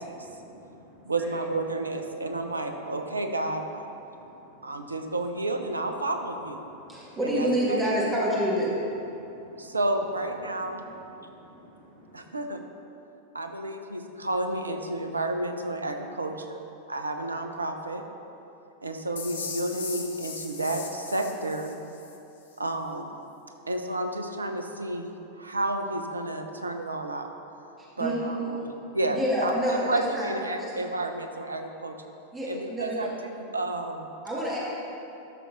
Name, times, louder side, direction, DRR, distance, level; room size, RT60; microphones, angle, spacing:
voice 1, 0.3-1.0 4.1-4.2 4.6-4.8 6.8-7.1 9.1-9.8 11.2-12.2, equal, 50° right, -7 dB, 2.3 m, -54 dB
voice 2, 1.0-3.9 4.6-6.6 7.2-8.0 9.6-10.8 12.1-12.6 13.3-16.6 16.9-18.0 18.8-21.8 22.6-23.1 23.7-27.3 28.0-31.9 32.5-34.1, right 2 dB, 80° right, 5 dB, 0.7 m, -31 dB
voice 3, 6.9-8.7 28.0-28.5 29.1-30.3 30.6-30.7 32.3-33.1 34.2-34.6, equal, 15° right, -7 dB, 2.0 m, -27 dB
sound 1, 19.2-22.2, left 5 dB, 65° left, 0.9 m, -38 dB
12.0 x 6.7 x 4.0 m, 2.9 s
figure-of-eight pair, 90°, 0 cm